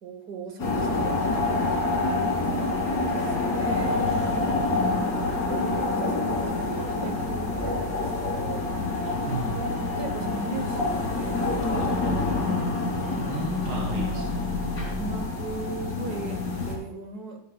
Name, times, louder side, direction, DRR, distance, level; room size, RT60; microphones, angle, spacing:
voice 1, 0.0-4.4 4.7-4.8 5.1-8.8 9.7-12.6 13.1-13.5 15.0-17.4, right 3 dB, 60° right, 6 dB, 1.6 m, -39 dB
sound 1, 0.6-16.8, left 2 dB, 65° left, 3.1 m, -27 dB
voice 2, 4.7-5.4 9.3-9.7 13.3-14.4 14.7-14.9, right 3 dB, 75° right, 0 dB, 2.0 m, -35 dB
13.0 x 11.0 x 2.3 m, 0.98 s
omnidirectional pair, 2.0 m